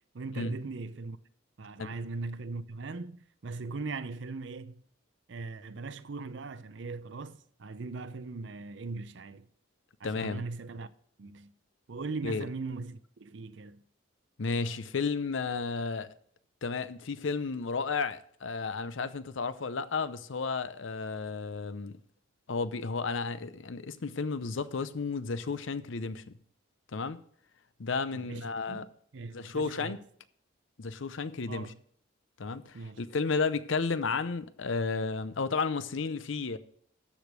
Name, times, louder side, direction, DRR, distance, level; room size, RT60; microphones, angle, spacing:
voice 1, 0.1-1.2 1.6-4.8 5.3-9.5 10.0-10.9 11.2-11.5 11.9-13.8 28.1-28.9 29.1-30.0 31.5-31.7 32.7-33.0, right 3 dB, 60° right, 0.6 m, -39 dB
voice 2, 10.0-10.4 12.2-12.5 14.4-16.1 16.6-22.0 22.5-26.2 26.9-27.2 27.8-28.8 29.3-30.0 30.8-31.7 32.4-36.6, left 4 dB, 70° left, 0.6 m, -33 dB
13.5 x 5.1 x 6.1 m
head